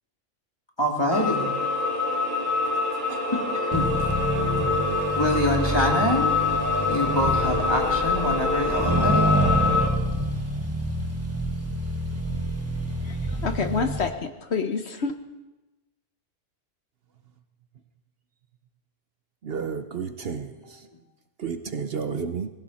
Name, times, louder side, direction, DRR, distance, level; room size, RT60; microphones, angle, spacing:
voice 1, 0.8-1.5 3.1-3.9 5.2-6.3 6.9-9.3, left 1 dB, 20° left, 0 dB, 2.3 m, -25 dB
sound 1, 1.1-9.9, left 3 dB, 45° right, 2.2 m, -25 dB
Accelerating revving vroom, 3.7-14.1, right 1 dB, 10° right, 1.4 m, -28 dB
voice 2, 13.0-15.2, left 5 dB, 65° left, 6 dB, 1.2 m, -28 dB
voice 3, 19.4-20.9 21.4-22.5, right 6 dB, 60° right, 9 dB, 0.9 m, -31 dB
19.0 x 16.0 x 4.2 m, 1.1 s
omnidirectional pair, 1.2 m